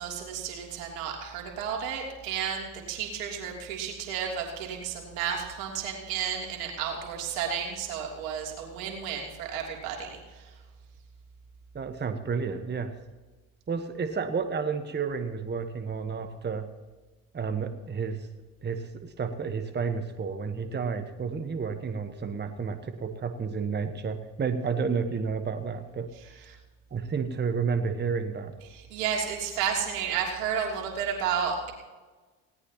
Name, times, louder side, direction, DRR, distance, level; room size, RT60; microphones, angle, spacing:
voice 1, 0.0-10.6 28.7-31.7, right 7 dB, 75° right, 0 dB, 3.1 m, -32 dB
voice 2, 11.7-12.9 13.7-16.7 17.3-18.3 18.6-26.6 26.9-28.5, right 5 dB, 25° right, 8 dB, 1.2 m, -31 dB
19.0 x 17.5 x 2.9 m, 1.3 s
hypercardioid pair, 60°, 40 cm